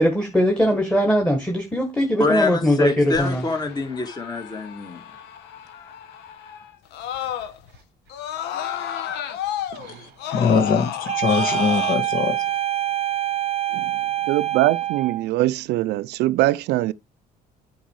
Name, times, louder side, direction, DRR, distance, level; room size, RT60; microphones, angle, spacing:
voice 1, 0.0-3.4, equal, 5° left, 1.7 m, -20 dB
voice 2, 2.2-5.0, left 3 dB, 25° left, 1.8 m, -25 dB
Screaming, 3.1-7.8 8.1-11.9, left 10 dB, 85° left, 1.1 m, -32 dB
voice 3, 9.9-12.4, left 6 dB, 55° left, 1.5 m, -22 dB
sound 1, 11.1-15.3, right 12 dB, 40° right, 0.6 m, -25 dB
voice 4, 14.3-16.9, right 16 dB, 80° right, 0.5 m, -22 dB
8.1 x 4.6 x 4.7 m
cardioid pair, 110°, 17 cm